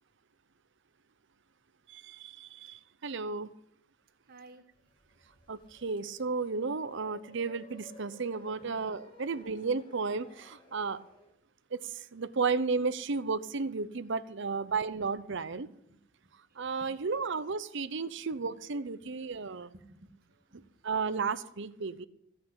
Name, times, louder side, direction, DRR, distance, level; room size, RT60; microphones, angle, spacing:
voice 1, 1.9-3.5 5.5-11.0 11.7-15.7 16.6-19.7 20.8-22.1, right 4 dB, 65° right, 13 dB, 0.8 m, -33 dB
voice 2, 4.3-4.6 8.6-8.9 14.5-14.9 15.3-16.3 16.8-17.1 19.7-20.6, right 2 dB, 50° right, 7 dB, 1.3 m, -57 dB
sound 1, 4.7-11.3, left 1 dB, 25° left, 2.6 m, -56 dB
16.0 x 6.0 x 8.7 m, 0.73 s
head